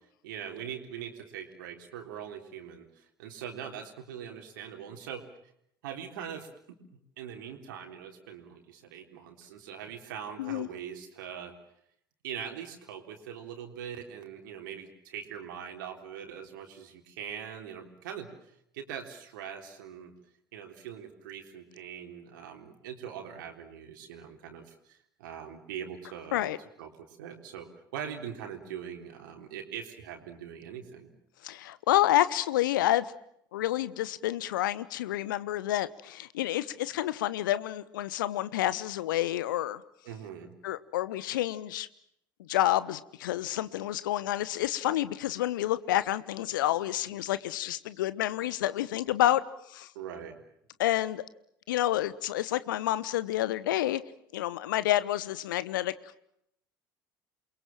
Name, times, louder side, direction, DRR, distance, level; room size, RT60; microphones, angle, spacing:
voice 1, 0.2-5.2 5.8-6.5 6.9-11.5 12.2-20.1 20.5-26.5 26.8-31.1 40.0-40.6 49.9-50.4, right 8 dB, 65° right, 4 dB, 3.8 m, -42 dB
voice 2, 31.4-33.1 33.5-39.8 40.6-41.9 42.4-49.4 49.7-49.9 50.8-51.2 51.7-54.0 54.3-55.9, left 13 dB, 65° left, 16 dB, 1.2 m, -29 dB
29.0 x 22.5 x 7.5 m, 0.75 s
figure-of-eight pair, 65°, 11 cm